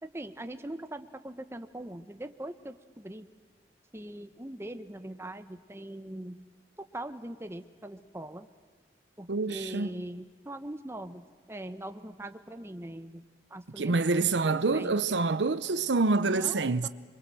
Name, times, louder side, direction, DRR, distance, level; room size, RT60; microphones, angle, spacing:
voice 1, 0.0-3.3 3.9-6.4 6.9-8.5 9.2-13.2 13.5-15.2 16.2-16.9, right 1 dB, 15° right, 1.0 m, -41 dB
voice 2, 9.3-9.9 13.8-16.9, right 3 dB, 85° right, 0.8 m, -26 dB
27.0 x 24.0 x 7.8 m
head